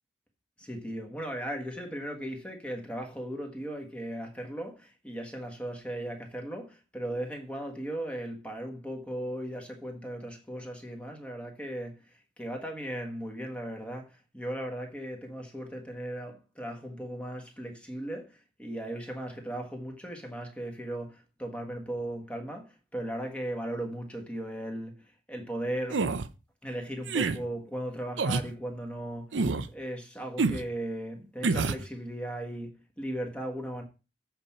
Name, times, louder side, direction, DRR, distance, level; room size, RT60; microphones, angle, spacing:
voice 1, 0.6-26.1 26.6-29.4 29.7-33.8, right 1 dB, 5° left, 1.4 m, -37 dB
sound 1, 25.9-26.3 27.1-27.4 28.2-28.5 29.3-29.7 30.4-30.6 31.4-31.8, right 4 dB, 90° right, 0.6 m, -27 dB
8.0 x 4.4 x 5.6 m
head